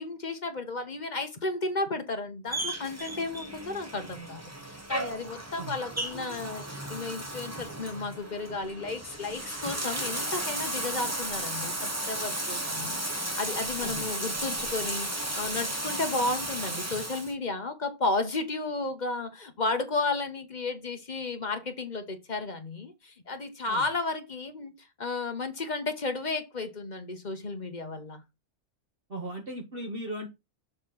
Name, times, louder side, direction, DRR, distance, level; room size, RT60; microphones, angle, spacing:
voice 1, 0.0-24.7 25.0-28.2, left 3 dB, 35° left, 1.0 m, -33 dB
Bathtub (filling or washing), 2.5-17.3, right 1 dB, 15° right, 0.9 m, -34 dB
voice 2, 29.1-30.3, right 1 dB, 45° right, 1.2 m, -37 dB
6.8 x 3.1 x 5.5 m
omnidirectional pair, 1.5 m